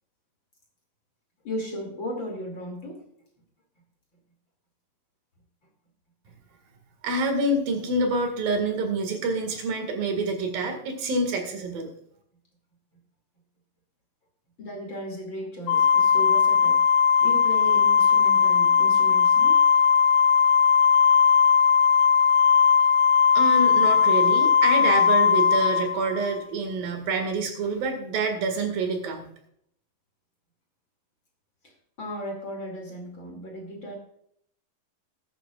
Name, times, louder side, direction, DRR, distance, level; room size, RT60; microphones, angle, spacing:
voice 1, 1.4-3.1 6.3-6.4 14.6-16.9 17.2-19.7 31.6-31.7 32.0-34.0, equal, 35° left, 1 dB, 2.9 m, -36 dB
voice 2, 7.0-11.9 23.4-29.3, right 2 dB, 80° right, 4 dB, 3.8 m, -27 dB
Organ, 15.7-26.4, left 7 dB, 80° left, 2.2 m, -19 dB
20.0 x 9.8 x 2.5 m, 0.67 s
omnidirectional pair, 4.0 m